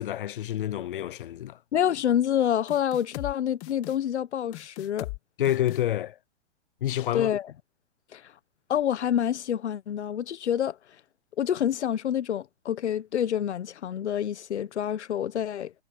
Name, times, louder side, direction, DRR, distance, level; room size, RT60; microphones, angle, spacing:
voice 1, 0.0-1.6 5.4-6.2 6.8-7.3, left 12 dB, 50° left, 0.6 m, -28 dB
voice 2, 1.7-5.1 7.1-7.5 8.1-8.3 8.7-10.8 11.4-15.7, left 10 dB, 75° left, 1.4 m, -27 dB
sound 1, 2.7-3.3 3.6-4.0 4.5-5.2 5.4-5.8, left 20 dB, 25° left, 1.7 m, -38 dB
hypercardioid pair, 165°, 34 cm